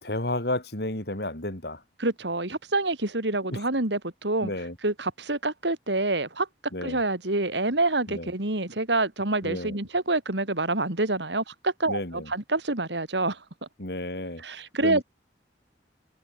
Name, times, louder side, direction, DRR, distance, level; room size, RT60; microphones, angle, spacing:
voice 1, 0.0-1.8 3.5-3.6 4.4-4.8 6.7-7.0 8.1-8.3 9.4-9.8 11.9-12.3 13.8-14.4 14.8-15.0, left 1 dB, 60° left, 4.0 m, -32 dB
voice 2, 2.0-4.5 4.8-6.5 6.8-13.4 14.4-15.0, right 2 dB, 75° right, 3.6 m, -27 dB
head